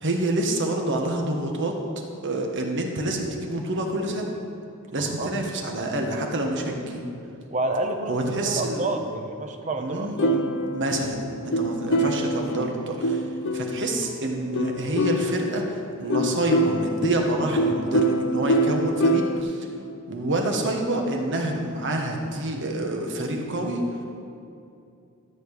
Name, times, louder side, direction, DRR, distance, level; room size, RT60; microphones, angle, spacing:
voice 1, 0.0-1.8 2.2-4.3 4.9-7.0 8.1-8.8 9.8-10.4 10.7-11.2 11.4-13.3 13.5-19.7 20.1-23.8, right 1 dB, 60° right, 2 dB, 1.4 m, -27 dB
voice 2, 5.0-5.3 7.5-10.4, right 2 dB, 35° right, 5 dB, 0.9 m, -29 dB
Ukulele Improv, 10.2-14.0 14.5-19.4, right 1 dB, 60° left, 0.6 m, -25 dB
13.5 x 4.6 x 8.2 m, 2.6 s
head